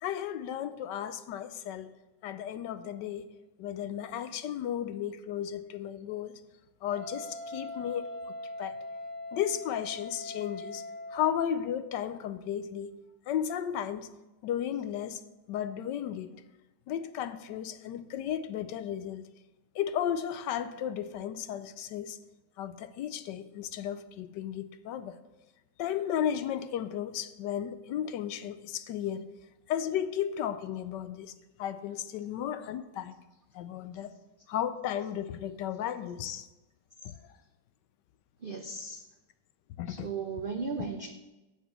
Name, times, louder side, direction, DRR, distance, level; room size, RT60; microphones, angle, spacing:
voice 1, 0.0-1.9 2.2-3.3 3.6-6.4 6.8-8.1 8.6-8.8 9.3-10.8 11.1-13.0 13.3-14.1 14.4-15.2 15.5-16.3 16.9-19.2 19.7-22.2 22.6-25.2 25.8-29.3 29.7-31.3 31.6-33.1 33.5-34.1 34.5-36.5 37.0-37.2 39.8-40.1, left 10 dB, 80° left, 1.2 m, -34 dB
Wind instrument woodwind instrument, 6.9-11.6, left 1 dB, 45° right, 1.3 m, -41 dB
voice 2, 38.4-39.0 39.9-41.1, right 4 dB, 85° right, 0.4 m, -36 dB
8.1 x 6.1 x 7.2 m
omnidirectional pair, 1.9 m